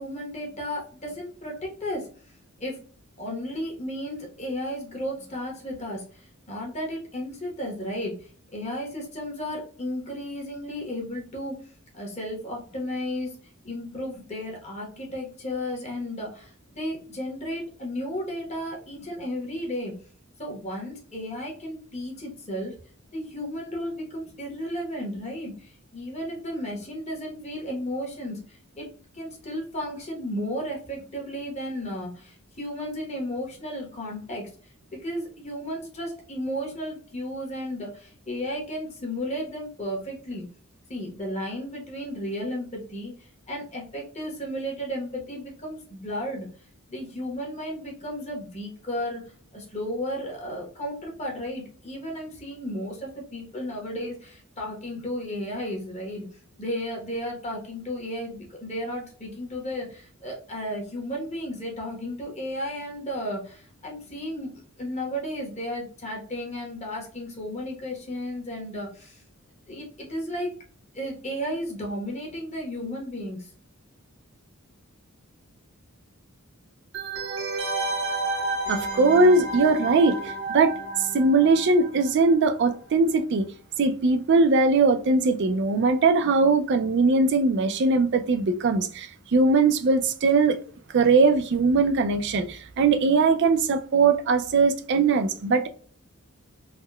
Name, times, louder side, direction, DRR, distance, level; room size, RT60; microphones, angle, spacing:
voice 1, 0.0-2.1 2.6-2.8 3.2-11.6 11.9-13.4 13.6-19.9 20.4-22.7 23.1-34.5 34.9-40.4 40.9-46.5 46.9-49.2 49.5-56.3 56.6-64.5 64.8-69.2 69.7-70.5 70.9-73.5, equal, 30° left, 1.0 m, -34 dB
sound 1, 76.9-82.4 82.7-82.8, right 3 dB, 75° right, 0.8 m, -31 dB
voice 2, 78.7-83.5 83.8-90.6 90.9-95.7, right 3 dB, 50° right, 0.3 m, -21 dB
3.5 x 2.1 x 2.2 m
head